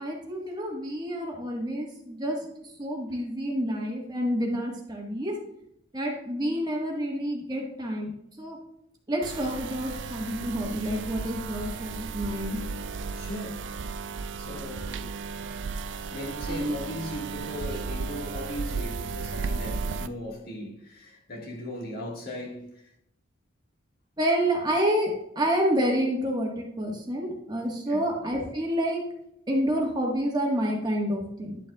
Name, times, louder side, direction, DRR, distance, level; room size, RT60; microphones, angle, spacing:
voice 1, 0.0-2.4 2.8-5.4 5.9-8.1 8.4-8.6 9.1-12.6 16.5-16.7 24.2-29.0 29.5-31.6, equal, 20° right, 1.5 m, -28 dB
sound 1, 9.2-20.1, right 4 dB, 60° right, 0.4 m, -34 dB
voice 2, 13.1-13.7 14.4-15.1 16.1-22.7 27.9-28.1, left 1 dB, 50° left, 1.8 m, -38 dB
10.5 x 7.3 x 2.4 m
head